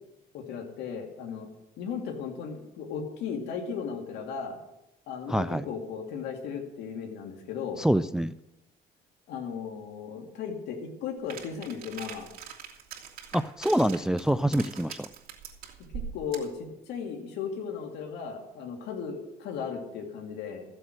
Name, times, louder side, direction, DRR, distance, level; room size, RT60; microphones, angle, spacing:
voice 1, 0.3-1.5 1.8-4.6 5.1-7.8 9.3-12.3 16.1-16.5 16.9-20.6, left 6 dB, 85° left, 1 dB, 2.5 m, -36 dB
voice 2, 5.3-5.6 7.8-8.3 13.3-15.1, right 1 dB, 5° right, 15 dB, 0.4 m, -26 dB
sound 1, 11.3-16.6, right 8 dB, 60° right, 3.0 m, -42 dB
15.0 x 7.8 x 7.7 m, 0.90 s
cardioid pair, 110°, 17 cm